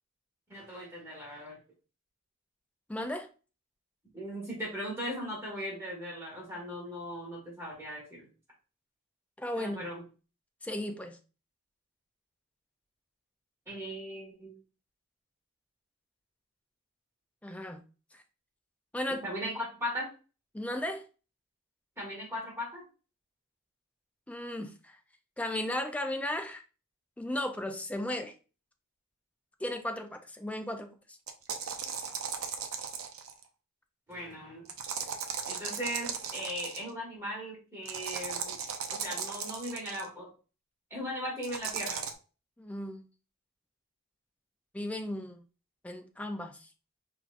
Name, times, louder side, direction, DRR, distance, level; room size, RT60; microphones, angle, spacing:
voice 1, 0.5-1.6 4.1-8.3 9.6-10.0 13.7-14.5 19.2-20.1 22.0-22.8 34.1-34.7 35.5-38.6 38.9-40.3 40.9-42.0, equal, 10° right, 1.6 m, -38 dB
voice 2, 2.9-3.3 9.4-9.9 10.6-11.2 17.4-17.8 18.1-18.2 18.9-19.2 20.5-21.0 24.3-25.0 25.4-26.6 27.2-28.3 29.6-31.2 42.6-43.1 44.7-45.4 45.8-46.7, left 1 dB, 5° left, 0.3 m, -35 dB
sound 1, 31.3-33.4 34.7-36.9 37.9-40.1 41.4-42.1, right 6 dB, 75° right, 0.5 m, -37 dB
4.9 x 2.4 x 2.4 m
head